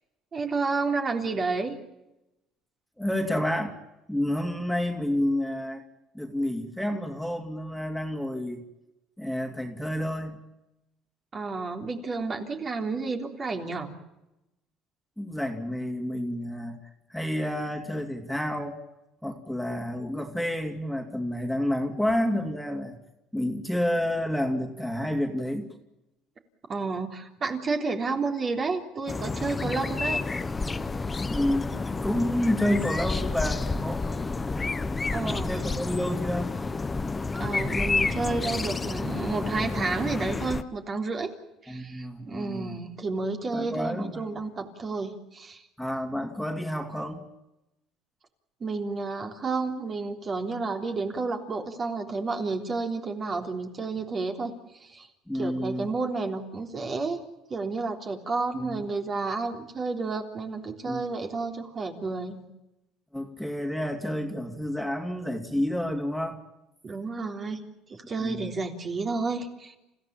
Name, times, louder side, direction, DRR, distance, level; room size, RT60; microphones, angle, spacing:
voice 1, 0.3-1.8 11.3-14.0 26.7-30.2 35.1-35.5 37.4-41.3 41.6-45.6 48.6-55.1 55.3-57.2 57.5-62.5 66.8-67.6 67.9-69.8, right 3 dB, 35° right, 3 dB, 3.6 m, -31 dB
voice 2, 3.0-3.7 4.1-5.8 6.1-8.6 9.2-10.4 15.2-16.8 17.1-18.8 19.2-22.9 23.3-25.7 31.2-34.1 35.2-36.5 41.7-42.8 43.5-44.3 45.8-47.2 55.3-55.9 58.5-58.8 60.8-61.0 63.1-66.4 68.2-68.5, left 1 dB, ahead, 4 dB, 3.0 m, -29 dB
sound 1, 29.1-40.6, left 3 dB, 20° left, 1.1 m, -30 dB
29.5 x 15.5 x 9.0 m, 0.95 s
cardioid pair, 110°, 0 cm